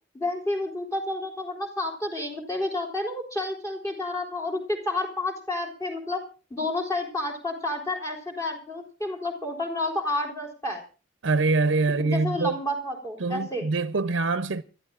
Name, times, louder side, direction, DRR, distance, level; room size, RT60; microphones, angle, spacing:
voice 1, 0.1-6.2 6.5-10.8 12.0-13.7, left 2 dB, 15° left, 3.8 m, -30 dB
voice 2, 11.2-12.6 13.2-14.6, right 3 dB, 85° right, 0.6 m, -24 dB
29.5 x 14.0 x 2.5 m
head